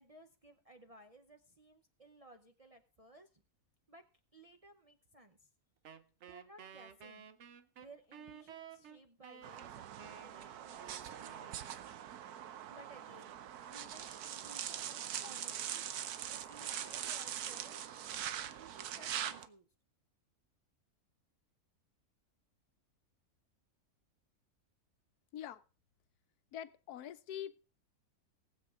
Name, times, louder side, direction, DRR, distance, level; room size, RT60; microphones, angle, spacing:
voice 1, 0.0-3.4 3.9-4.0 4.3-5.5 6.3-7.2 7.8-11.7 12.7-13.3 13.7-15.9 16.3-17.8 18.4-19.7, right 1 dB, 35° right, 0.6 m, -58 dB
Wind instrument woodwind instrument, 5.8-12.1, right 8 dB, 55° right, 1.0 m, -54 dB
sound 1, 9.4-19.5, right 10 dB, 90° right, 1.3 m, -43 dB
voice 2, 26.5-27.6, left 10 dB, 90° left, 1.2 m, -44 dB
18.5 x 7.6 x 3.6 m
omnidirectional pair, 1.6 m